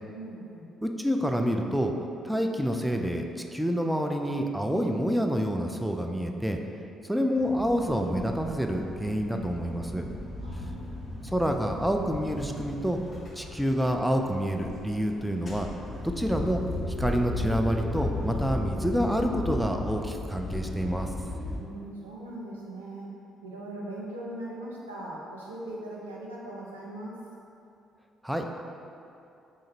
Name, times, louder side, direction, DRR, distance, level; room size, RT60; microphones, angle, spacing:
voice 1, 0.1-0.7 10.4-10.9 21.6-23.1 23.4-27.2, right 1 dB, 80° right, -5 dB, 0.5 m, -40 dB
voice 2, 0.8-1.9 2.2-3.3 3.5-6.6 7.0-10.0 11.2-13.0 13.4-15.7 16.0-16.6 17.0-21.1 28.2-28.6, equal, ahead, 3 dB, 0.3 m, -28 dB
sound 1, 7.4-21.6, left 1 dB, 30° left, 0.6 m, -36 dB
3.8 x 2.5 x 4.0 m, 2.7 s
figure-of-eight pair, 45°, 0 cm